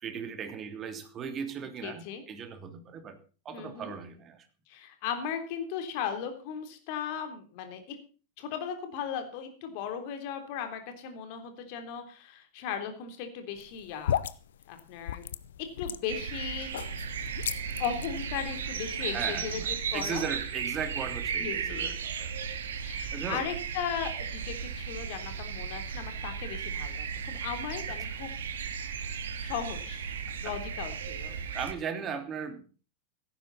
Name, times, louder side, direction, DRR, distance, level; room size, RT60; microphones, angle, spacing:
voice 1, 0.0-3.2 3.4-4.5 19.0-22.3 23.1-23.4 30.3-30.5 31.5-32.7, right 7 dB, 25° right, 7 dB, 3.2 m, -37 dB
voice 2, 1.8-2.2 3.5-3.9 4.7-8.0 8.4-14.2 14.7-15.2 15.8-17.0 17.8-19.6 19.9-20.2 21.4-21.9 22.8-28.3 29.4-31.6, left 8 dB, 45° left, 7 dB, 3.5 m, -37 dB
sound 1, 13.6-19.6, left 10 dB, 60° left, 0.9 m, -37 dB
sound 2, 16.1-31.7, right 6 dB, 65° right, 2.1 m, -35 dB
17.0 x 14.5 x 4.2 m, 0.36 s
figure-of-eight pair, 90°, 0 cm